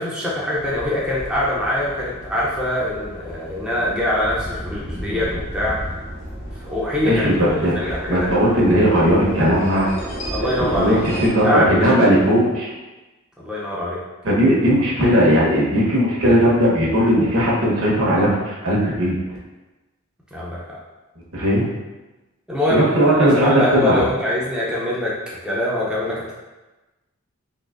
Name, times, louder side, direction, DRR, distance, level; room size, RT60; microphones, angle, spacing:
voice 1, 0.0-5.8 6.6-8.4 10.3-11.0 11.4-12.1 13.4-14.0 20.3-20.8 22.5-25.2 25.4-26.3, left 1 dB, 5° right, -7 dB, 0.5 m, -23 dB
sound 1, 0.5-11.3, right 1 dB, 50° left, 0.9 m, -33 dB
voice 2, 7.0-9.9 10.7-12.7 14.2-19.2 21.3-21.7 22.7-24.0, equal, 70° right, -5 dB, 1.0 m, -17 dB
3.9 x 2.7 x 2.5 m, 1.1 s
head